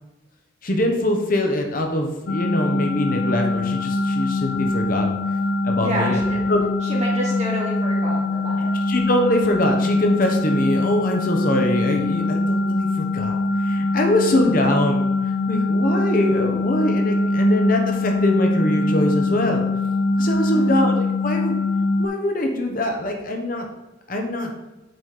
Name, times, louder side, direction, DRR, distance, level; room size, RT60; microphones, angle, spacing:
voice 1, 0.6-5.1 5.6-6.2 6.5-6.6 8.9-15.1 15.5-19.6 20.2-21.5 22.0-23.7 24.1-24.5, left 1 dB, 50° left, 3 dB, 1.0 m, -23 dB
sound 1, 2.3-22.1, left 2 dB, 85° left, 0.5 m, -23 dB
voice 2, 5.8-6.5 6.8-8.7 20.5-20.9, right 1 dB, 35° right, -5 dB, 2.5 m, -29 dB
8.1 x 4.1 x 4.9 m, 1.1 s
head